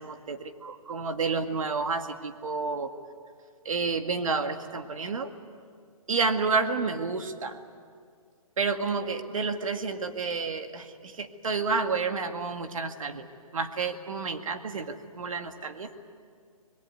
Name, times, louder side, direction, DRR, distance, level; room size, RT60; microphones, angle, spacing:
voice 1, 0.0-2.9 3.7-5.3 6.1-7.6 8.6-13.3 13.5-15.9, right 4 dB, 65° right, 7 dB, 2.1 m, -30 dB
25.0 x 21.5 x 9.3 m, 2.2 s
hypercardioid pair, 165°, 19 cm